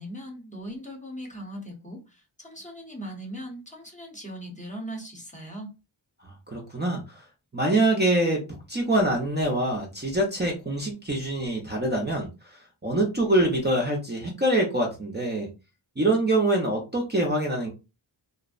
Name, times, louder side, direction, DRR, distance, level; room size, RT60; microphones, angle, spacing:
voice 1, 0.0-5.7, equal, 15° left, 0 dB, 0.8 m, -39 dB
voice 2, 6.2-7.0 7.5-8.4 8.7-12.3 12.8-15.5 16.0-17.7, right 1 dB, 20° right, -1 dB, 0.6 m, -24 dB
2.5 x 2.0 x 2.4 m, 0.28 s
wide cardioid pair, 65°, 46 cm